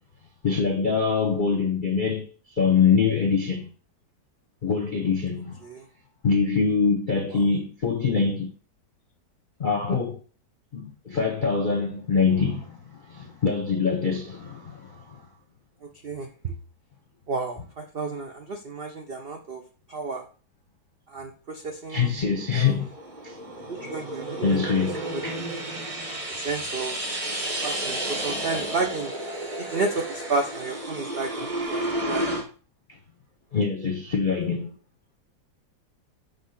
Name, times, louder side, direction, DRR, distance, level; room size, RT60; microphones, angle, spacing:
voice 1, 0.4-2.3 2.6-3.7 4.6-5.6 6.2-8.5 9.6-10.2 10.7-15.2 21.9-22.9 23.2-23.4 24.4-25.5 33.5-34.7, left 5 dB, 45° left, 0.7 m, -24 dB
voice 2, 15.8-16.5 17.3-19.6 19.9-20.2 21.1-22.1 22.5-22.9 23.7-24.6 25.0-25.5 26.3-27.0 27.6-29.1 29.6-32.4, right 3 dB, 85° right, 0.5 m, -32 dB
sound 1, 22.3-32.4, right 1 dB, 25° right, 1.0 m, -32 dB
5.4 x 3.5 x 5.8 m
omnidirectional pair, 1.9 m